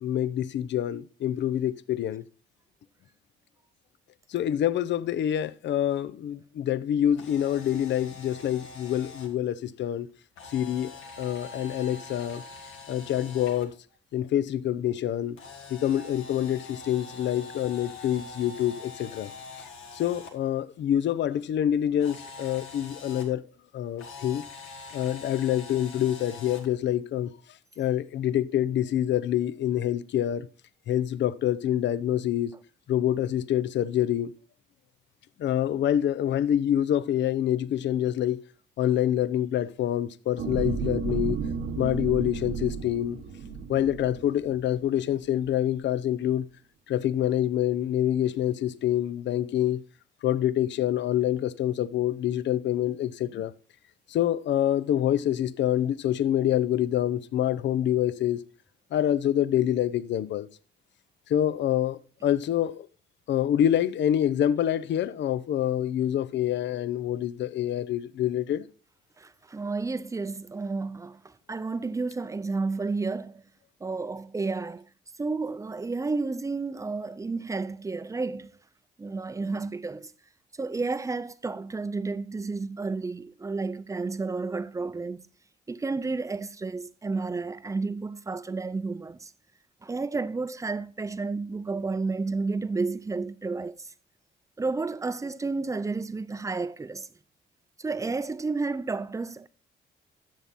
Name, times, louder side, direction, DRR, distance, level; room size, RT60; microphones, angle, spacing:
voice 1, 0.0-2.2 4.3-10.1 10.5-10.9 11.2-12.4 12.9-13.7 14.1-15.4 15.7-19.3 19.9-23.4 23.7-24.5 24.9-27.3 27.8-30.5 30.9-32.5 32.9-34.3 35.4-38.4 38.8-41.4 41.8-43.2 43.7-46.5 46.9-49.8 50.2-53.5 54.1-58.4 58.9-60.5 61.3-62.9 63.3-68.6, left 11 dB, 65° left, 0.6 m, -26 dB
Camera, 7.1-9.3 10.4-13.7 15.4-20.3 22.0-23.2 24.0-26.7, left 4 dB, 80° left, 2.2 m, -44 dB
sound 1, 40.4-44.9 45.4-45.5, right 6 dB, 80° right, 1.2 m, -33 dB
voice 2, 69.2-73.4 73.8-74.8 75.2-78.5 79.0-80.1 80.6-85.2 85.7-89.3 89.8-93.9 94.6-97.1 97.8-99.5, right 3 dB, 15° right, 0.5 m, -31 dB
10.5 x 7.3 x 4.1 m
cardioid pair, 90°, 20 cm